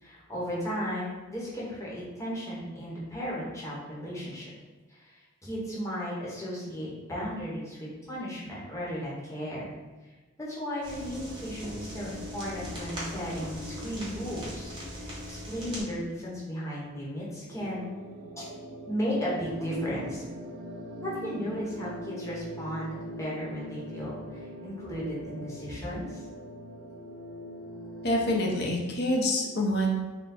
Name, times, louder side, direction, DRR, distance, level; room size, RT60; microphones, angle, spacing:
voice 1, 0.0-4.5 4.9-5.1 5.4-9.7 10.4-18.0 18.4-18.5 18.9-20.2 21.0-26.2, equal, 15° left, -7 dB, 1.0 m, -35 dB
sound 1, 10.8-15.8, equal, 20° right, 1.0 m, -39 dB
sound 2, 17.5-28.5, right 1 dB, 40° right, 0.4 m, -42 dB
voice 2, 28.0-30.0, left 1 dB, 50° left, -1 dB, 0.7 m, -26 dB
4.2 x 2.2 x 4.2 m, 1.3 s
head